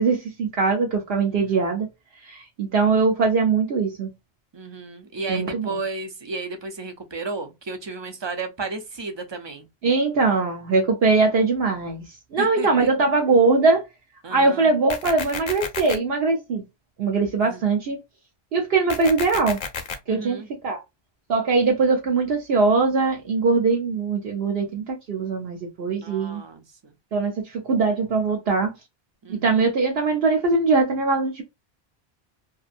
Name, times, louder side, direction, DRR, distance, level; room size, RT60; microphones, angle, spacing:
voice 1, 0.0-1.9 2.2-4.1 5.3-5.8 9.8-12.0 12.3-13.8 14.3-16.6 17.0-18.0 18.5-19.6 20.1-20.8 21.3-26.4 27.1-28.7 29.3-31.4, right 4 dB, 70° right, 0.9 m, -21 dB
voice 2, 4.5-9.7 12.4-12.9 14.2-14.7 17.4-17.6 20.1-20.5 25.9-26.9 29.2-29.6, right 3 dB, 35° right, 0.4 m, -33 dB
sound 1, 14.9-15.9 18.9-19.9, left 6 dB, 55° left, 0.7 m, -31 dB
2.7 x 2.5 x 2.4 m
omnidirectional pair, 1.1 m